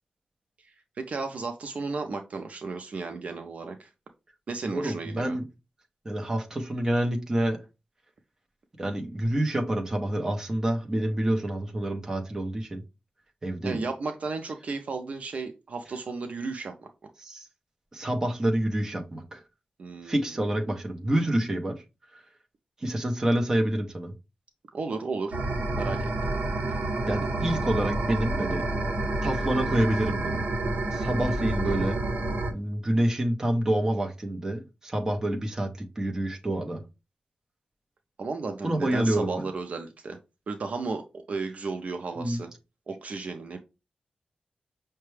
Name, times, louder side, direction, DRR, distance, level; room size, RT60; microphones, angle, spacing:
voice 1, 0.6-3.9 4.5-5.4 13.6-16.9 19.8-20.2 24.7-25.4 25.7-26.3 38.2-40.2 40.5-42.5 42.9-43.6, right 4 dB, 55° right, 0.5 m, -34 dB
voice 2, 4.6-5.4 6.0-7.6 8.8-12.8 13.4-13.8 17.2-17.5 17.9-19.4 20.0-21.8 22.8-24.1 27.1-28.6 29.2-30.5 30.9-32.0 32.5-35.7 36.0-36.8 38.6-39.5 42.2-42.4, right 1 dB, 20° right, 0.8 m, -27 dB
sound 1, 25.3-32.5, right 2 dB, 75° right, 0.8 m, -28 dB
5.7 x 2.2 x 3.2 m
wide cardioid pair, 170°, 3 cm